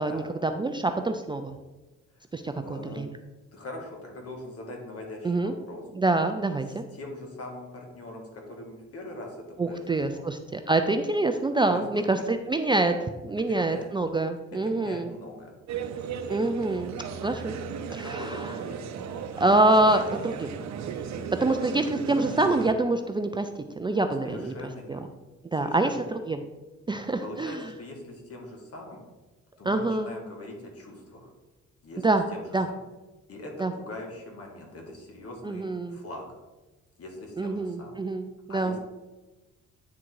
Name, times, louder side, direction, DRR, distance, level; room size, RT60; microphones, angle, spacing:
voice 1, 0.0-1.5 2.3-3.2 5.2-5.5 6.0-6.8 9.6-15.1 16.3-16.9 17.2-17.5 17.9-18.4 19.4-20.5 21.4-23.5 23.8-24.5 24.9-25.0 25.5-26.4 26.9-27.6 29.6-30.1 32.0-32.2 32.5-32.7 33.6-33.7 35.4-36.0 37.4-38.8, right 2 dB, 15° right, 6 dB, 0.4 m, -26 dB
voice 2, 2.1-3.0 3.5-5.8 6.7-10.2 11.6-12.3 13.5-13.9 14.6-15.6 17.9-18.8 24.2-25.0 25.5-26.1 27.2-29.0 29.6-31.3 31.8-32.8 33.3-36.3 37.0-38.0 38.5-38.8, left 2 dB, 50° left, 1 dB, 2.0 m, -42 dB
sound 1, 15.7-22.7, right 7 dB, 65° right, 0.7 m, -35 dB
9.4 x 3.7 x 4.6 m, 1.1 s
cardioid pair, 90°, 30 cm